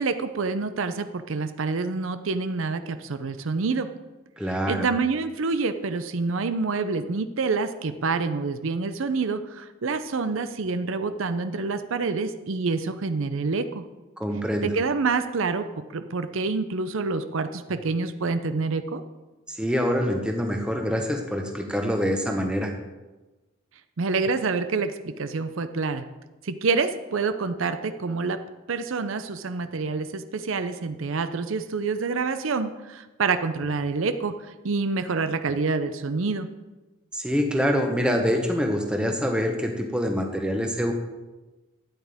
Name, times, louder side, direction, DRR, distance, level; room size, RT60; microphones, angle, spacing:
voice 1, 0.0-3.9 4.7-13.8 14.6-19.0 24.0-26.0 26.4-28.4 28.7-36.5, right 4 dB, 75° right, 10 dB, 0.6 m, -27 dB
voice 2, 4.4-4.9 14.2-14.7 19.5-22.7 37.1-40.9, equal, 5° right, 3 dB, 1.0 m, -25 dB
12.5 x 9.6 x 3.5 m, 1.1 s
head